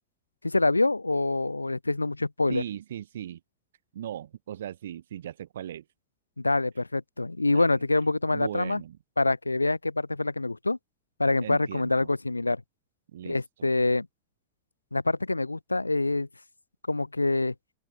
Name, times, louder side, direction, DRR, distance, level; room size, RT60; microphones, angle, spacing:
voice 1, 0.4-2.6 6.4-8.8 9.2-10.8 11.2-12.6 13.3-14.1 14.9-16.3 16.9-17.5, left 2 dB, 80° left, 0.7 m, -26 dB
voice 2, 2.5-3.4 3.9-5.8 7.5-7.7 8.3-9.0 11.4-12.1 13.1-13.7, right 11 dB, 60° right, 1.0 m, -38 dB
open air
figure-of-eight pair, 90°, 0 cm